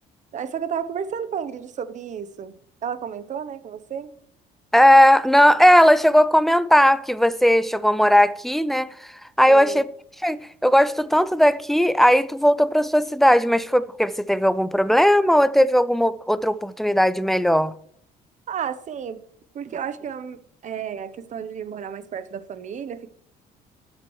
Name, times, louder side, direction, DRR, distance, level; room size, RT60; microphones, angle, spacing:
voice 1, 0.3-4.1 9.4-9.8 18.5-19.2 19.5-23.1, right 8 dB, 45° right, 0.8 m, -32 dB
voice 2, 4.7-8.9 9.4-9.9 10.2-17.7, equal, ahead, 0.4 m, -17 dB
17.5 x 7.5 x 3.2 m
cardioid pair, 110°, 17 cm